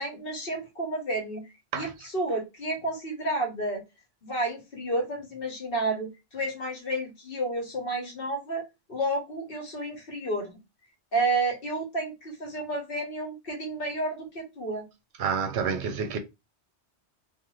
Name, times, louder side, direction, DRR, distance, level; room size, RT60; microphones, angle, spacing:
voice 1, 0.0-1.4 1.7-3.8 4.2-8.6 8.9-10.6 11.1-14.8, right 2 dB, 55° left, 1.1 m, -31 dB
voice 2, 15.2-16.2, right 6 dB, 75° right, 0.8 m, -28 dB
2.5 x 2.4 x 2.9 m
omnidirectional pair, 1.2 m